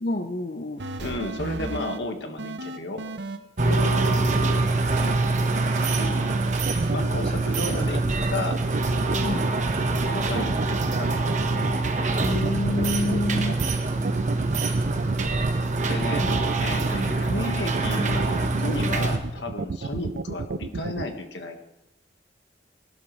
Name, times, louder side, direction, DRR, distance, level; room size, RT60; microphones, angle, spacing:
voice 1, 0.0-0.9 3.6-4.7 5.0-5.6 9.2-9.5 12.2-13.7, left 1 dB, 50° left, 7 dB, 0.6 m, -30 dB
sound 1, 0.8-2.0 2.4-4.2 5.0-5.2 5.6-6.9, right 2 dB, 80° right, 1.0 m, -34 dB
voice 2, 1.0-3.0 5.9-6.3 6.7-8.6 10.1-11.7 15.9-21.6, left 2 dB, 85° left, 5 dB, 1.7 m, -33 dB
sound 2, 3.6-19.2, right 2 dB, 40° right, 1.2 m, -25 dB
sound 3, 6.3-21.0, right 4 dB, 55° right, 0.4 m, -31 dB
21.0 x 12.0 x 3.2 m, 0.92 s
head